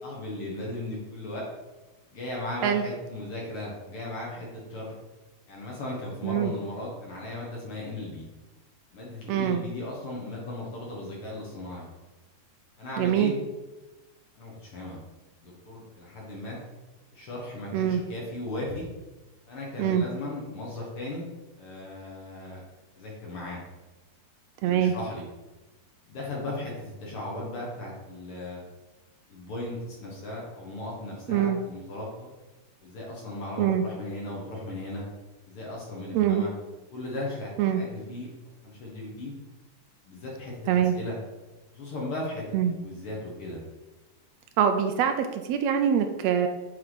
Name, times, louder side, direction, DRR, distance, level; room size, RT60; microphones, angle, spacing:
voice 1, 0.0-1.4 2.1-4.9 5.5-8.2 8.9-11.9 12.8-13.4 14.4-15.0 15.4-16.6 17.2-18.9 19.5-21.3 21.6-22.6 22.9-23.6 24.6-25.2 26.1-28.6 29.3-32.3 32.8-35.1 35.5-36.5 36.9-38.3 38.6-39.3 40.1-41.2 41.7-42.4 42.8-43.6, left 2 dB, 55° left, -3 dB, 1.9 m, -37 dB
voice 2, 9.3-9.6 13.0-13.3 17.7-18.0 19.8-20.1 24.6-24.9 31.3-31.6 33.6-33.8 36.1-36.5 37.6-37.8 40.7-40.9 42.5-42.8 44.6-46.5, right 9 dB, 90° right, 6 dB, 1.5 m, -24 dB
7.8 x 4.2 x 4.0 m, 1.1 s
omnidirectional pair, 3.6 m